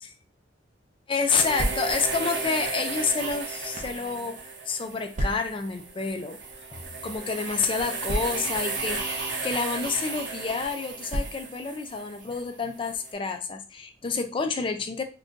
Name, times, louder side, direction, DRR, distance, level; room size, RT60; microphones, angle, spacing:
voice 1, 1.1-6.4 6.7-15.0, left 4 dB, 30° left, 7 dB, 0.4 m, -29 dB
sound 1, 1.3-13.1, right 4 dB, 75° right, 0.8 m, -34 dB
sound 2, 1.5-2.2 3.0-4.0 5.1-5.7 6.6-6.8 7.0-7.1 8.0-8.7 9.6-9.8 11.1-11.7, equal, 45° right, 0.5 m, -32 dB
2.5 x 2.3 x 3.7 m, 0.34 s
head